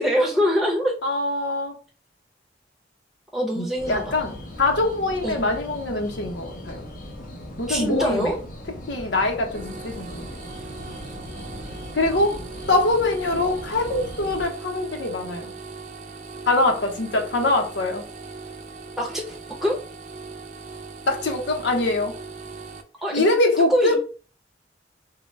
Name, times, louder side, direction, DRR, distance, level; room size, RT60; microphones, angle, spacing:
voice 1, 0.0-1.0 3.3-4.0 5.2-5.4 7.7-8.3 19.0-19.8 23.0-23.4 23.7-24.0, equal, ahead, 0.8 m, -23 dB
voice 2, 1.0-1.8 3.5-6.9 7.6-8.3 8.9-10.4 11.9-12.4 12.7-15.5 16.5-18.1 21.1-22.2 23.1-24.0, left 2 dB, 80° left, 0.8 m, -23 dB
sound 1, 3.7-14.4, left 1 dB, 50° left, 0.9 m, -39 dB
sound 2, 9.5-22.8, right 4 dB, 40° right, 0.4 m, -39 dB
3.8 x 2.1 x 3.2 m
head